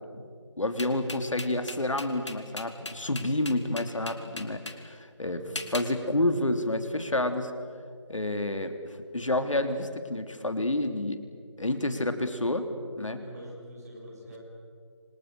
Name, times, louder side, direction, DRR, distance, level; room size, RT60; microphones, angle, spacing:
voice 1, 0.6-5.4 5.7-7.5 8.1-8.7 9.1-11.2 11.6-12.7 13.0-13.2, left 1 dB, 85° left, 7 dB, 3.1 m, -29 dB
sound 1, 0.8-4.8 5.6-5.9, left 2 dB, 65° left, 2.9 m, -38 dB
voice 2, 5.2-6.1 13.2-14.4, equal, 30° right, -3 dB, 8.0 m, -45 dB
29.0 x 26.5 x 6.8 m, 2.1 s
figure-of-eight pair, 175°, 16 cm